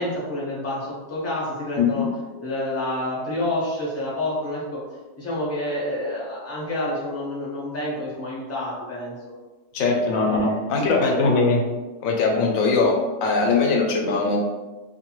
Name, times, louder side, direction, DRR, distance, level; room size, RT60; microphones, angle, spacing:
voice 1, 0.0-2.1 2.4-4.8 5.2-9.3 10.0-10.6 11.1-11.4, left 1 dB, 20° left, -5 dB, 0.4 m, -29 dB
voice 2, 1.8-2.1 9.7-11.6 12.0-14.4, left 3 dB, 85° left, 1 dB, 1.0 m, -21 dB
2.6 x 2.2 x 2.9 m, 1.2 s
omnidirectional pair, 1.4 m